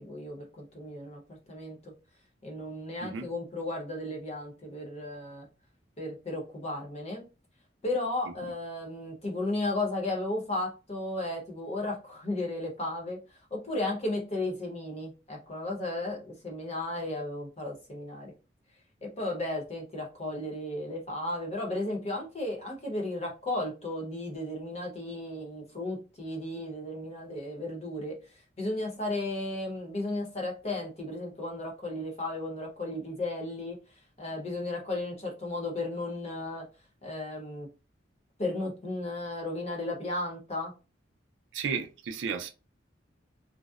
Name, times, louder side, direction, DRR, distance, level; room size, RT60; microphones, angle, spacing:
voice 1, 0.0-1.9 2.4-5.5 6.0-7.2 7.8-13.2 13.5-18.3 19.0-28.2 28.6-33.8 34.2-36.7 37.0-37.7 38.4-40.7, left 2 dB, 35° left, 0.8 m, -34 dB
voice 2, 41.5-42.5, right 6 dB, 75° right, 0.4 m, -33 dB
2.6 x 2.0 x 2.3 m
head